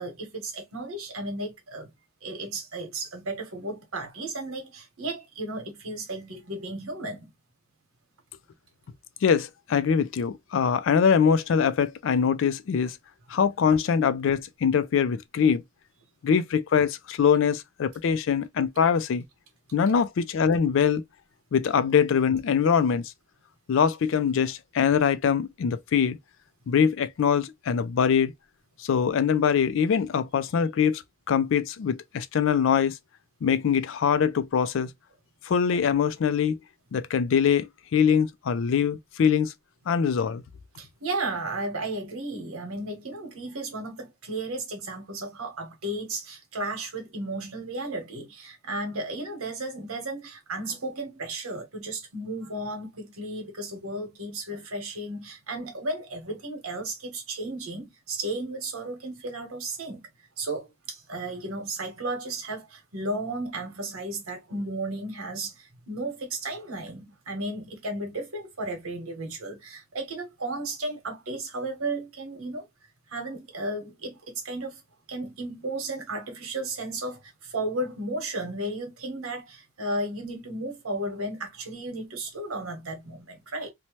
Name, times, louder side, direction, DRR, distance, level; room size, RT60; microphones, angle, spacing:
voice 1, 0.0-1.9 2.2-7.3 40.8-60.1 60.4-72.7 73.1-74.8 75.1-83.7, right 2 dB, 85° right, 1.1 m, -34 dB
voice 2, 9.2-13.0 13.3-15.6 16.2-19.2 19.7-21.0 21.5-23.0 23.7-26.2 26.7-28.3 28.8-31.0 31.3-33.0 33.4-34.9 35.5-36.6 36.9-39.5 39.9-40.4, left 7 dB, 65° left, 0.3 m, -23 dB
2.7 x 2.1 x 2.9 m
head